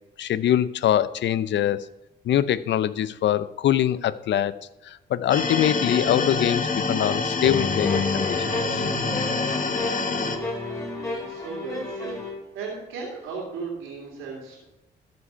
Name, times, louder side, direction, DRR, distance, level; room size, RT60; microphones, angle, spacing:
voice 1, 0.2-1.9 2.2-6.6 6.9-8.8, left 11 dB, 60° left, 16 dB, 0.6 m, -23 dB
sound 1, 5.3-10.4, left 4 dB, 40° left, 1.5 m, -26 dB
sound 2, 7.4-12.4, left 3 dB, 15° left, 4.6 m, -31 dB
voice 2, 10.6-12.2 12.5-14.6, right 4 dB, 80° right, -5 dB, 2.5 m, -36 dB
13.5 x 5.2 x 5.5 m, 0.94 s
hypercardioid pair, 50°, 21 cm